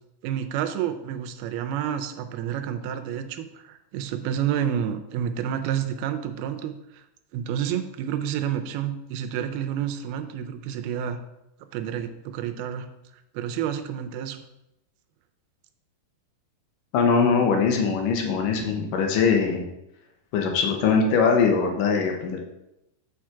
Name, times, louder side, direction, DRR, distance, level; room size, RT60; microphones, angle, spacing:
voice 1, 0.2-7.0 7.3-11.2 11.7-12.9 13.3-14.4, right 9 dB, 80° right, 8 dB, 2.5 m, -29 dB
voice 2, 16.9-19.6 20.3-22.4, left 5 dB, 75° left, 2 dB, 2.2 m, -21 dB
7.0 x 4.9 x 4.5 m, 0.88 s
omnidirectional pair, 4.5 m